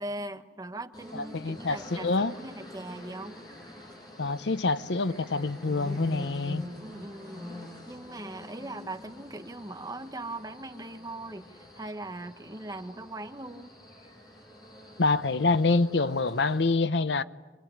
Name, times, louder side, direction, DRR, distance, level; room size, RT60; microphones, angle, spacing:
voice 1, 0.0-3.4 6.8-7.5 7.9-13.8, right 2 dB, 20° right, 1.2 m, -40 dB
sound 1, 0.9-16.8, left 1 dB, 25° left, 7.8 m, -46 dB
voice 2, 1.3-2.3 4.2-6.6 15.0-17.2, left 3 dB, 75° left, 0.8 m, -26 dB
25.5 x 22.5 x 9.7 m
head